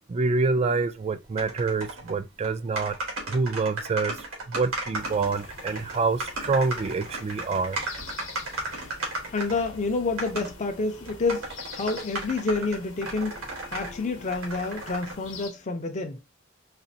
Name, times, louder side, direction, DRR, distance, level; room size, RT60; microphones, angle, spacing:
voice 1, 0.1-3.0 3.2-7.8, right 4 dB, 30° right, 0.3 m, -27 dB
sound 1, 1.4-2.1 2.4-2.5 2.8-9.7 10.2-10.5 11.0-13.9 14.3-15.1, right 2 dB, 85° right, 1.6 m, -35 dB
sound 2, 5.0-15.5, left 4 dB, 65° left, 0.9 m, -45 dB
voice 2, 9.3-13.4 13.7-16.2, left 3 dB, 35° left, 0.5 m, -29 dB
4.1 x 2.4 x 2.7 m
head